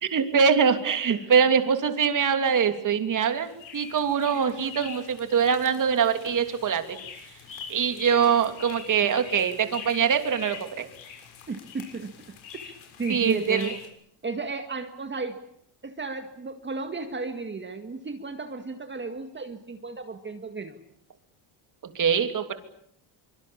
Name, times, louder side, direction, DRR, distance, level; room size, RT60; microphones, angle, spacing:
voice 1, 0.0-7.0 7.7-10.9 13.1-13.7 21.8-22.5, right 7 dB, 40° right, 7 dB, 3.1 m, -23 dB
sound 1, 3.2-13.9, left 7 dB, 65° left, 6.7 m, -44 dB
voice 2, 11.5-12.1 12.6-13.8 14.2-15.4 15.8-20.8, right 4 dB, 20° right, 6 dB, 2.0 m, -34 dB
25.0 x 24.0 x 8.8 m, 0.72 s
cardioid pair, 140°, 50 cm